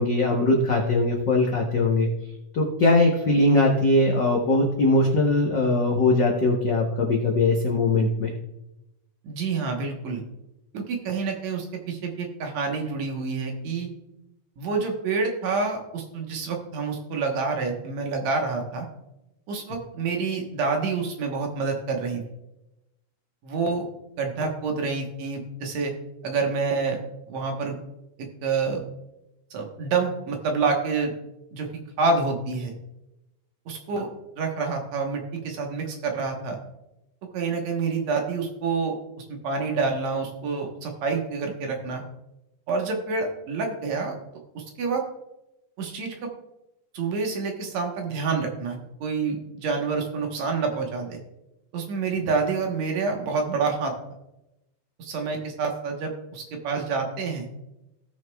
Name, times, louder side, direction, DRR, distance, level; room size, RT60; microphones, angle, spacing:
voice 1, 0.0-2.1 2.5-8.3, left 2 dB, 80° left, 0 dB, 1.0 m, -21 dB
voice 2, 9.2-10.2 10.7-13.9 14.6-18.9 19.5-22.2 23.4-23.9 24.2-25.9 26.2-27.0 27.3-27.8 28.2-28.8 29.5-31.1 31.5-31.7 32.0-32.7 33.7-34.1 34.4-36.6 37.3-42.0 42.7-44.1 44.6-45.0 45.8-46.3 46.9-51.2 51.7-53.9 55.0-57.5, right 4 dB, 65° right, 2 dB, 2.3 m, -28 dB
17.5 x 6.5 x 2.3 m, 0.92 s
omnidirectional pair, 3.6 m